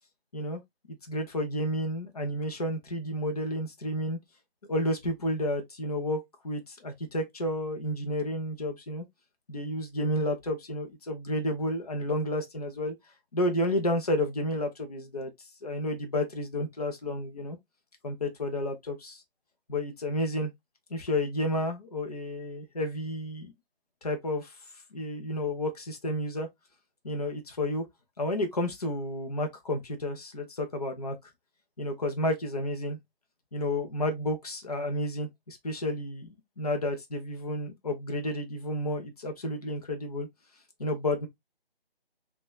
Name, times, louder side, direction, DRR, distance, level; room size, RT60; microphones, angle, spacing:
voice 1, 0.9-4.2 4.7-9.0 9.5-12.9 13.3-15.3 15.6-17.6 18.0-19.2 19.7-20.5 20.9-23.5 24.0-24.6 24.9-26.5 27.0-27.8 28.2-31.2 31.8-33.0 33.5-36.3 36.6-40.3 40.8-41.3, left 1 dB, 40° left, 0.6 m, -31 dB
2.7 x 2.2 x 2.3 m
figure-of-eight pair, 150°, 31 cm